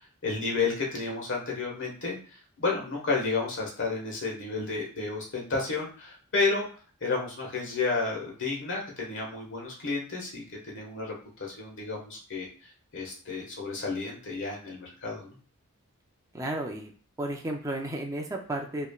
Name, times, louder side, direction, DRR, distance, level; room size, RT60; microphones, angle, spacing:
voice 1, 0.2-2.2 2.6-6.7 7.0-11.1 11.4-12.5 12.9-15.4, left 4 dB, 60° left, -1 dB, 1.4 m, -31 dB
voice 2, 16.3-16.9 17.2-18.9, right 1 dB, 15° right, 1 dB, 0.5 m, -33 dB
5.5 x 3.1 x 2.4 m, 0.40 s
head